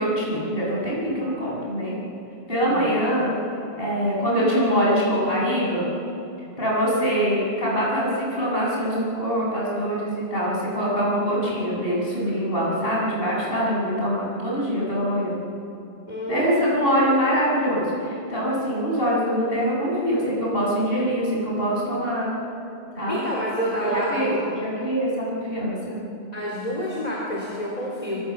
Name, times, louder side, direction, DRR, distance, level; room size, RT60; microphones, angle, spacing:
voice 1, 0.0-2.0 2.5-3.3 3.8-6.0 6.6-15.4 16.3-22.3 23.0-23.2 23.8-26.0, equal, 60° left, -5 dB, 7.4 m, -24 dB
voice 2, 16.1-16.7 23.1-24.4 26.3-28.2, equal, 35° left, -4 dB, 4.0 m, -28 dB
24.0 x 23.5 x 7.3 m, 2.8 s
omnidirectional pair, 1.1 m